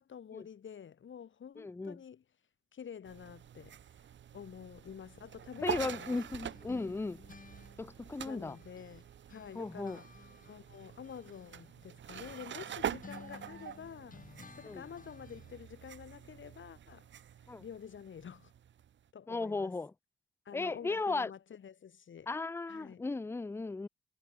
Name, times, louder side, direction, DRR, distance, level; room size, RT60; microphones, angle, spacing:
voice 1, 0.0-2.2 2.7-3.8 4.3-6.2 6.7-7.0 8.2-10.1 10.4-14.3 14.6-17.1 17.6-18.5 19.1-19.7 20.5-22.3 22.7-23.0, left 8 dB, 85° left, 2.0 m, -49 dB
voice 2, 1.6-2.0 5.6-7.2 7.8-8.6 9.5-10.0 14.6-14.8 17.5-17.6 19.3-19.9 20.5-21.3 22.3-23.9, left 3 dB, 10° left, 0.4 m, -36 dB
sound 1, 3.0-19.1, right 9 dB, 70° right, 0.6 m, -45 dB
sound 2, 5.6-9.0 9.3-15.7, left 4 dB, 45° left, 4.9 m, -56 dB
wide cardioid pair, 130°, 20 cm